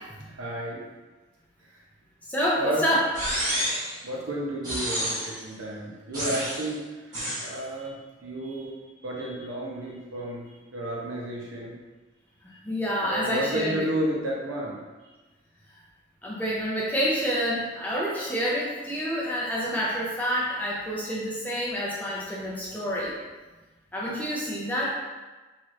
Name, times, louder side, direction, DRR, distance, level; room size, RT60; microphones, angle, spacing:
voice 1, 0.3-0.8 1.7-1.8 2.6-2.8 4.0-8.7 9.0-10.4 10.7-11.8 13.0-14.8, right 1 dB, 90° right, -3 dB, 0.7 m, -32 dB
voice 2, 2.3-3.0 7.3-7.4 8.4-8.5 12.4-13.8 16.2-23.1 23.9-24.9, equal, 10° left, -6 dB, 0.4 m, -28 dB
sound 1, 3.1-3.9 4.6-5.4 6.1-6.7 7.1-7.5, equal, 20° right, 1.1 m, -29 dB
2.9 x 2.4 x 3.1 m, 1.2 s
head